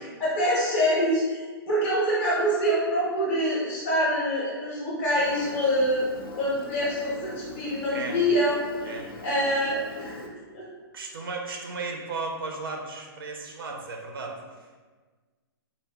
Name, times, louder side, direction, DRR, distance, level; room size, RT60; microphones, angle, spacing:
voice 1, 0.2-6.1 6.3-8.5 8.8-10.2 10.5-10.6, equal, 15° left, -7 dB, 0.7 m, -25 dB
Engine, 5.1-10.3, left 2 dB, 65° left, 0.6 m, -41 dB
voice 2, 10.9-14.4, right 3 dB, 65° right, 1 dB, 0.6 m, -35 dB
3.9 x 2.0 x 3.4 m, 1.4 s
hypercardioid pair, 175°, 13 cm